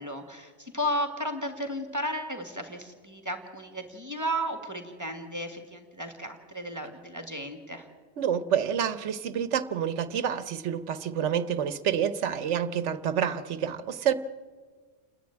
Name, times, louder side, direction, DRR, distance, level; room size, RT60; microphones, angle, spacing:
voice 1, 0.0-7.9, equal, 15° right, 5 dB, 1.8 m, -34 dB
voice 2, 8.2-14.1, right 8 dB, 80° right, 13 dB, 1.1 m, -28 dB
28.5 x 10.5 x 8.8 m, 1.5 s
omnidirectional pair, 1.2 m